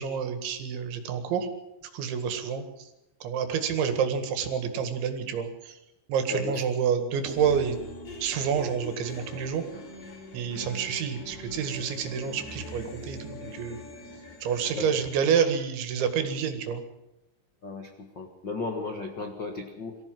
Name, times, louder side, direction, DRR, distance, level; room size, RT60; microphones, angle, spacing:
voice 1, 0.0-1.5 1.9-2.9 3.2-5.8 6.1-7.8 8.2-9.6 10.3-13.8 14.4-16.8, right 7 dB, 80° right, 8 dB, 4.3 m, -28 dB
voice 2, 6.3-6.7 14.4-14.9 17.6-20.0, left 3 dB, 85° left, 4 dB, 1.0 m, -35 dB
sound 1, 7.2-15.0, left 1 dB, 55° left, 5.0 m, -42 dB
23.5 x 15.0 x 7.7 m, 0.92 s
omnidirectional pair, 5.3 m